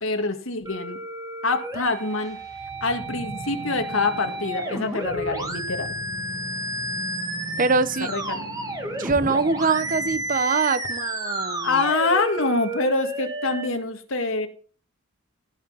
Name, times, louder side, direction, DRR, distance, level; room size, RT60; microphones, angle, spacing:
voice 1, 0.0-1.0 1.4-2.4 2.8-5.9 8.1-8.5 11.6-14.5, left 3 dB, 70° left, 1.9 m, -25 dB
sound 1, 0.7-13.7, right 1 dB, 20° right, 1.9 m, -32 dB
sound 2, 1.8-10.4, equal, 15° left, 4.2 m, -40 dB
voice 2, 7.6-8.1 9.0-11.8, right 4 dB, 40° right, 0.8 m, -23 dB
17.0 x 6.2 x 5.5 m
head